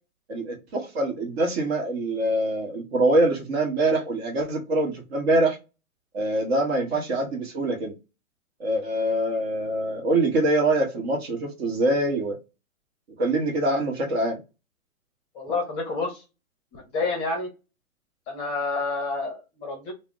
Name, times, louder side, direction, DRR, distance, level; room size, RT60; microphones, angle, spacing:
voice 1, 0.3-5.6 6.1-7.9 8.6-12.4 13.2-14.4, right 2 dB, 45° right, 0.9 m, -24 dB
voice 2, 15.3-16.2 16.7-17.5 18.3-19.9, left 3 dB, 20° left, 0.7 m, -29 dB
2.3 x 2.1 x 3.7 m
hypercardioid pair, 135°, 43 cm